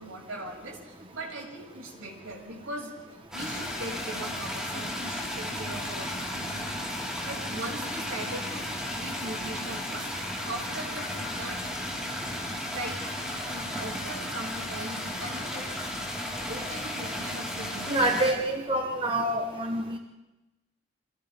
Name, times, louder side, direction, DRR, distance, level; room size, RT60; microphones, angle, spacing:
voice 1, 0.0-2.9 3.3-6.7 7.2-8.7 9.0-10.1 10.4-11.6 12.7-13.0 13.5-15.7 16.5-18.4, right 1 dB, 80° right, -1 dB, 7.1 m, -40 dB
sound 1, 3.3-18.3, left 1 dB, 5° right, 5.0 m, -34 dB
voice 2, 17.9-20.0, right 1 dB, 25° right, 3 dB, 1.4 m, -27 dB
29.5 x 27.0 x 3.8 m, 1.0 s
head